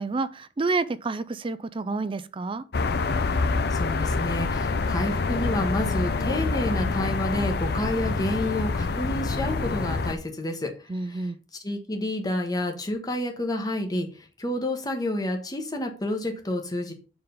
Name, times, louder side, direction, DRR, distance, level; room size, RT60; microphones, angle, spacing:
voice 1, 0.0-2.6 10.9-11.4, right 3 dB, 30° right, 0.4 m, -29 dB
sound 1, 2.7-10.1, left 3 dB, 60° left, 0.6 m, -26 dB
voice 2, 3.7-11.3 11.6-16.9, left 1 dB, 20° left, 1.3 m, -29 dB
6.9 x 3.8 x 5.1 m
head